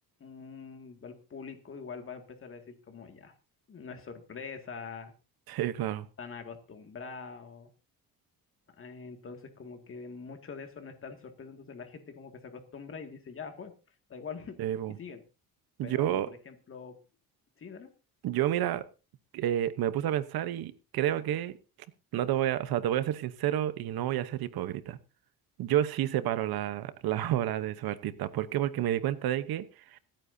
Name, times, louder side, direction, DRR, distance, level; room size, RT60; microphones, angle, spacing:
voice 1, 0.2-3.3 3.7-5.1 6.2-7.7 8.8-13.7 14.1-14.6 15.0-15.2 15.8-16.9 17.6-17.9, left 5 dB, 35° left, 5 dB, 2.2 m, -44 dB
voice 2, 5.5-6.1 14.6-14.9 15.8-16.3 18.2-18.8 19.3-21.5 22.1-25.0 25.6-29.7 29.9-30.0, right 12 dB, 80° right, 14 dB, 1.0 m, -30 dB
26.0 x 9.1 x 2.7 m, 0.31 s
cardioid pair, 140°, 36 cm